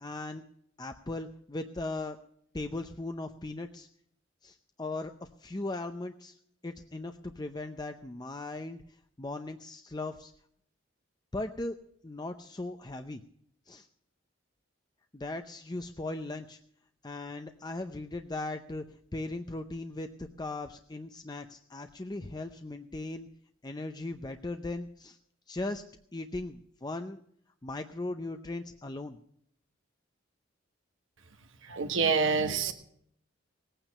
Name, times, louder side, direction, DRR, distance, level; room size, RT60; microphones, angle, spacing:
voice 1, 0.0-0.4 0.8-2.2 2.5-3.9 4.4-6.4 6.6-8.8 9.2-10.3 11.3-11.8 12.0-13.2 13.7-13.9 15.1-16.6 17.0-18.8 19.1-23.3 23.6-25.2 25.5-25.8 26.1-27.2 27.6-29.2, left 2 dB, 20° left, 7 dB, 0.6 m, -38 dB
voice 2, 31.6-32.7, right 5 dB, 85° right, 5 dB, 1.4 m, -27 dB
18.0 x 9.0 x 6.6 m, 0.68 s
head